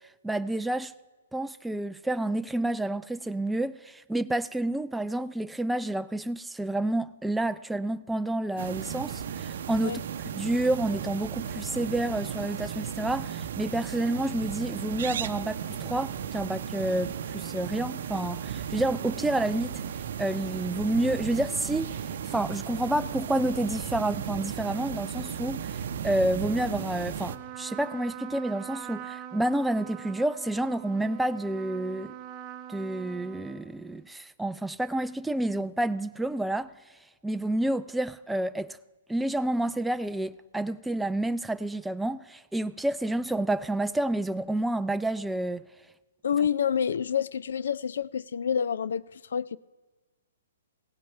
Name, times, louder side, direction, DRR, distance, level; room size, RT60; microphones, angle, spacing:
voice 1, 0.2-0.9 1.3-10.0 10.3-19.8 20.2-22.0 22.3-32.1 32.7-36.7 37.2-38.8 39.1-45.6, right 1 dB, 5° right, 0.3 m, -29 dB
sound 1, 8.6-27.4, right 8 dB, 60° right, 0.7 m, -35 dB
Trumpet, 27.3-34.1, right 11 dB, 25° right, 0.9 m, -43 dB
voice 2, 46.2-49.6, left 8 dB, 70° left, 0.4 m, -28 dB
16.5 x 8.4 x 5.6 m
hypercardioid pair, 135°, 0 cm